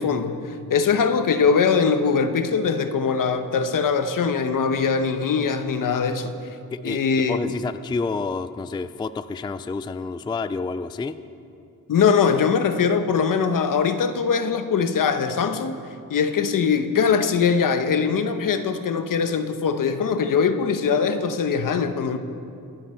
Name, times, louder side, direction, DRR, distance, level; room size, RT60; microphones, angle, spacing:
voice 1, 0.0-6.3 6.8-7.4 11.9-15.8 16.1-22.2, left 6 dB, 65° left, 9 dB, 1.0 m, -22 dB
voice 2, 6.7-11.2, left 4 dB, 15° left, 12 dB, 0.3 m, -29 dB
25.0 x 9.9 x 4.4 m, 2.6 s
cardioid pair, 110°, 35 cm